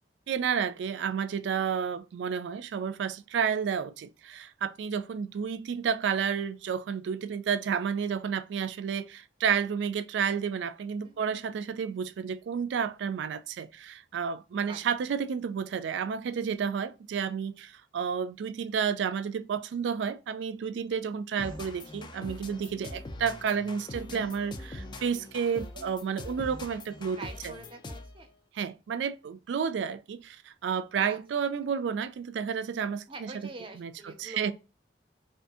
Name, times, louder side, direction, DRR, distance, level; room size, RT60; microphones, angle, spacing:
voice 1, 0.3-27.2 27.4-27.5 28.5-33.3 33.8-34.5, right 7 dB, 75° right, 0.3 m, -31 dB
voice 2, 11.0-11.5 14.7-14.8 27.1-28.3 31.1-31.2 33.1-34.5, right 3 dB, 30° right, 0.6 m, -45 dB
sound 1, 21.4-28.2, left 2 dB, 25° left, 0.3 m, -43 dB
2.6 x 2.4 x 2.3 m
head